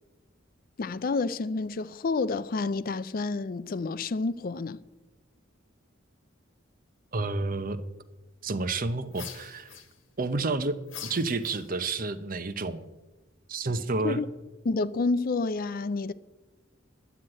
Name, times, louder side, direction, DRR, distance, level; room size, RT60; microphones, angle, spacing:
voice 1, 0.8-4.8 14.0-14.3 14.6-16.1, left 3 dB, 45° left, 0.4 m, -29 dB
voice 2, 7.1-7.8 8.4-9.7 10.2-10.8 11.0-12.8 13.5-14.2, right 3 dB, 45° right, 0.7 m, -30 dB
sound 1, 9.1-10.3 10.9-12.0, left 9 dB, 75° left, 1.5 m, -44 dB
11.0 x 7.8 x 8.8 m
head